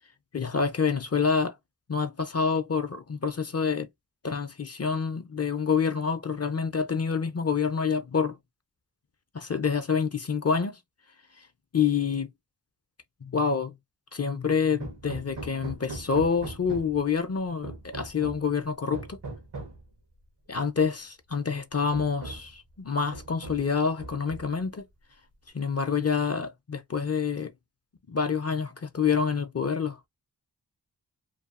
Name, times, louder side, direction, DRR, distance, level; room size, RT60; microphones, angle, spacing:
voice 1, 0.3-1.5 1.9-3.9 4.2-8.4 9.3-10.8 11.7-12.3 13.2-13.7 14.1-19.2 20.5-24.8 25.5-27.5 28.1-30.1, left 6 dB, 40° left, 0.5 m, -27 dB
Hammer, 14.8-17.1 17.6-18.5 18.9-19.8 20.9-21.0 21.4-21.5 21.9-22.6 23.1-23.7 24.0-24.7, right 3 dB, 80° right, 1.1 m, -40 dB
2.8 x 2.3 x 2.4 m
wide cardioid pair, 65°, 41 cm